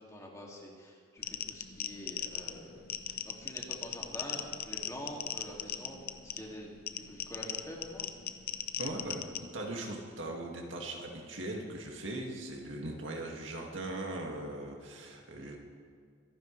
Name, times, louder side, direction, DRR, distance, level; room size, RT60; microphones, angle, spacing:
voice 1, 0.0-8.1, equal, 15° left, -2 dB, 2.5 m, -46 dB
sound 1, 1.2-9.4, left 10 dB, 55° left, 0.7 m, -39 dB
voice 2, 8.8-9.2 9.5-15.6, right 1 dB, 75° right, 0 dB, 2.2 m, -39 dB
24.0 x 11.0 x 3.3 m, 2.1 s
head